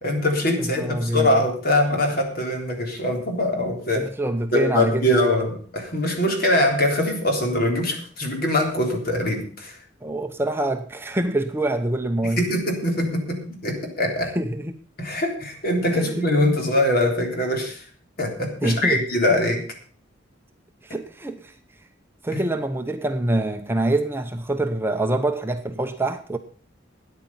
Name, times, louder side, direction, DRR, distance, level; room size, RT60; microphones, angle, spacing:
voice 1, 0.0-4.1 4.5-9.8 12.2-14.3 15.0-17.8 18.2-19.6 22.3-22.4, left 1 dB, 50° left, 3.6 m, -23 dB
voice 2, 0.6-1.4 4.0-5.2 10.0-12.4 14.4-14.8 15.9-16.2 18.6-19.0 20.8-21.5 22.2-26.4, right 1 dB, 10° right, 0.7 m, -25 dB
13.5 x 9.5 x 5.5 m
head